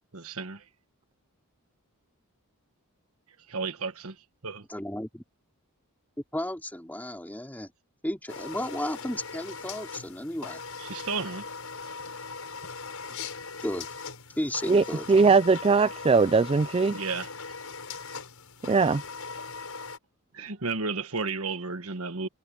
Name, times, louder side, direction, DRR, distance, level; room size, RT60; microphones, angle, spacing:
voice 1, 0.1-0.7 3.5-4.6 10.8-11.5 16.9-17.3 20.3-22.3, right 4 dB, 70° right, 1.4 m, -33 dB
voice 2, 4.7-5.2 6.3-7.7 8.0-10.6 13.6-13.9 14.4-15.1, left 1 dB, 10° left, 2.8 m, -33 dB
sound 1, 8.3-20.0, left 4 dB, 70° left, 7.8 m, -40 dB
voice 3, 14.7-17.0 18.7-19.0, right 4 dB, 25° right, 0.3 m, -21 dB
head